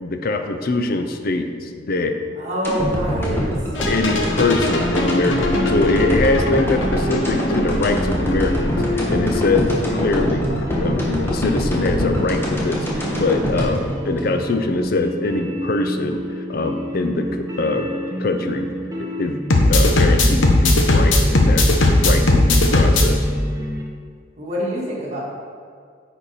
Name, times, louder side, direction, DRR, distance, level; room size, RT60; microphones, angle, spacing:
voice 1, 0.0-2.2 3.9-10.5 10.7-17.9 18.2-18.7 19.0-23.2, left 2 dB, 50° left, 7 dB, 0.6 m, -23 dB
voice 2, 2.4-3.5 24.4-25.2, equal, 35° right, -6 dB, 2.0 m, -25 dB
sound 1, 2.6-14.9 15.2-15.3, equal, 10° left, 1.2 m, -24 dB
sound 2, 3.8-12.4 19.5-23.0, left 2 dB, 80° left, 1.0 m, -19 dB
sound 3, 5.6-23.8, equal, 15° right, 0.8 m, -30 dB
9.9 x 4.5 x 4.2 m, 2.1 s
head